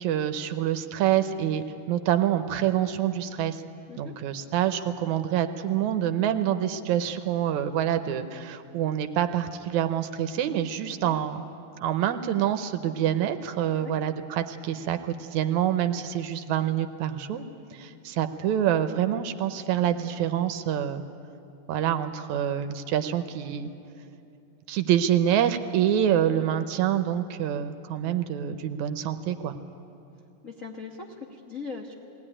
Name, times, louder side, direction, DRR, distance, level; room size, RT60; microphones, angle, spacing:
voice 1, 0.0-3.6 4.0-11.4 11.8-17.5 17.7-21.0 21.7-23.7 24.7-29.6, right 10 dB, 75° right, 9 dB, 2.0 m, -26 dB
voice 2, 30.4-31.9, left 4 dB, 85° left, 1 dB, 0.7 m, -40 dB
21.0 x 17.5 x 9.9 m, 2.7 s
omnidirectional pair, 3.7 m